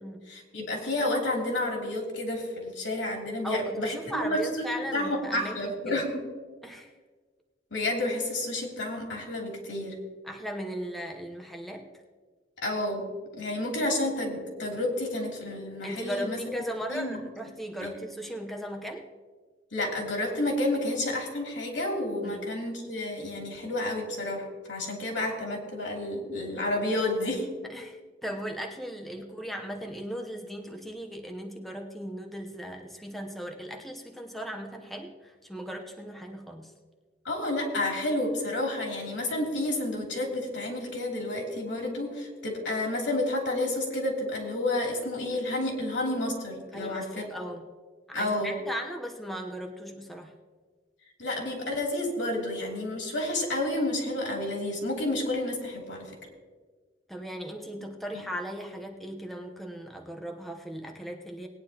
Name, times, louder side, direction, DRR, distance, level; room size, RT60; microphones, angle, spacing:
voice 1, 0.3-4.4 4.7-6.2 7.7-9.9 12.6-13.0 13.3-16.4 16.9-17.2 17.8-17.9 19.7-27.5 37.2-47.3 48.1-48.5 51.2-56.1 58.1-58.2, left 1 dB, 85° left, 0 dB, 2.9 m, -30 dB
voice 2, 3.4-5.9 6.6-6.9 10.2-11.9 15.8-19.1 22.2-22.4 27.6-36.7 46.7-47.7 48.1-50.3 57.1-61.5, equal, ahead, 2 dB, 0.8 m, -37 dB
19.5 x 9.6 x 2.9 m, 1.4 s
head